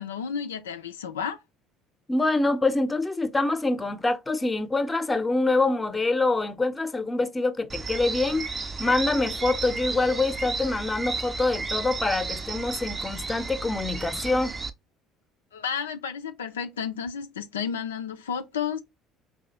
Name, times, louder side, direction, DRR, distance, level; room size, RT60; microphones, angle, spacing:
voice 1, 0.0-1.4 15.5-18.8, left 7 dB, 85° left, 0.4 m, -32 dB
voice 2, 2.1-8.5 8.8-14.5, left 2 dB, 15° left, 0.7 m, -25 dB
sound 1, 7.7-14.7, right 4 dB, 25° right, 0.5 m, -33 dB
4.7 x 2.3 x 2.9 m
hypercardioid pair, 60°, 0 cm